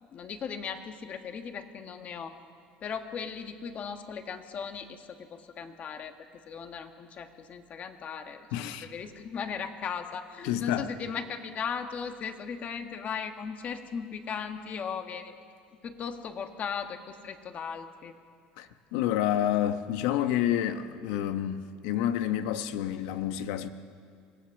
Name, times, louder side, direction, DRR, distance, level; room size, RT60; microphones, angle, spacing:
voice 1, 0.1-2.4 2.8-6.1 6.5-15.3 15.8-18.1, left 6 dB, 40° left, 7 dB, 1.6 m, -37 dB
voice 2, 8.5-8.9 10.4-10.9 18.6-23.7, left 11 dB, 80° left, 10 dB, 1.1 m, -29 dB
24.5 x 17.0 x 6.5 m, 2.2 s
supercardioid pair, 115°, 4 cm